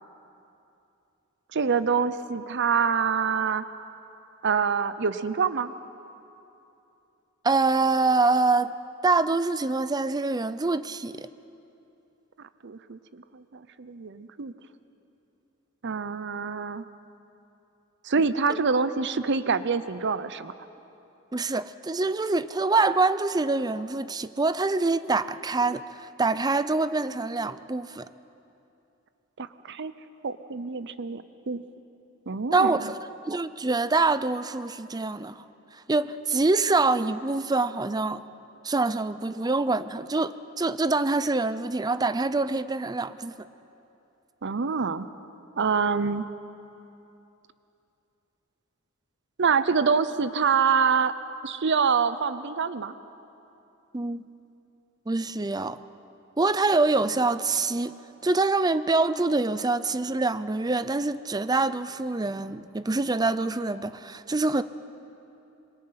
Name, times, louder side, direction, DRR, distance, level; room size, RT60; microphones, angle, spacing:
voice 1, 1.5-3.6 4.4-5.7 12.6-14.5 15.8-16.8 18.0-20.5 29.4-29.9 30.2-31.6 32.3-32.9 44.4-45.1 45.6-46.3 49.4-51.1 51.4-52.9, right 5 dB, 60° right, 13 dB, 0.7 m, -26 dB
voice 2, 7.4-8.7 9.0-11.3 18.5-18.6 21.3-28.1 32.5-33.0 33.3-35.4 35.9-38.2 38.6-43.3 53.9-54.2 55.1-55.8 56.4-57.9 58.2-64.6, right 3 dB, 20° right, 13 dB, 0.5 m, -25 dB
27.0 x 22.5 x 5.8 m, 2.8 s
head